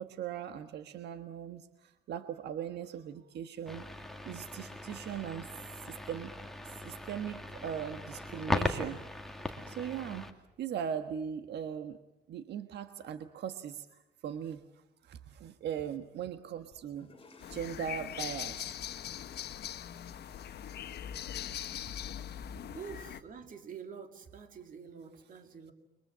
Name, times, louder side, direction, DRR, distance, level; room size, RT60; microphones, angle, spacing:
voice 1, 0.0-3.8 4.2-5.5 5.9-6.3 6.8-9.0 9.7-10.3 10.6-12.0 12.3-14.6 15.0-17.1 17.5-18.7, right 8 dB, 90° right, 9 dB, 1.5 m, -39 dB
sound 1, 3.7-10.3, left 1 dB, ahead, 2.1 m, -38 dB
sound 2, 16.7-22.7, left 4 dB, 35° left, 7.0 m, -59 dB
sound 3, 17.4-23.2, left 10 dB, 75° left, 1.3 m, -41 dB
voice 2, 22.0-22.5 22.7-25.7, right 6 dB, 55° right, 6 dB, 3.2 m, -47 dB
30.0 x 23.0 x 7.5 m, 0.89 s
wide cardioid pair, 160°, 17 cm